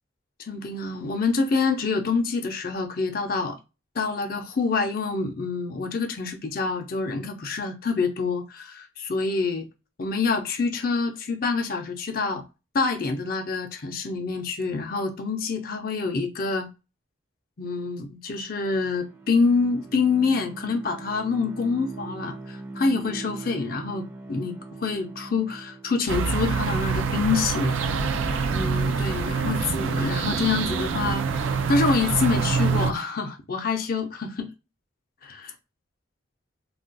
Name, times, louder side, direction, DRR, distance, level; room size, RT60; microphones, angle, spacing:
voice 1, 0.5-3.6 4.0-9.7 10.0-12.4 12.7-16.7 17.6-27.8 28.5-31.2 31.7-34.5 35.2-35.5, left 4 dB, 45° left, 0.5 m, -26 dB
Bowed string instrument, 18.7-26.4, right 3 dB, 10° right, 0.5 m, -41 dB
sound 1, 26.1-32.9, right 5 dB, 80° right, 0.4 m, -25 dB
2.4 x 2.2 x 3.8 m
head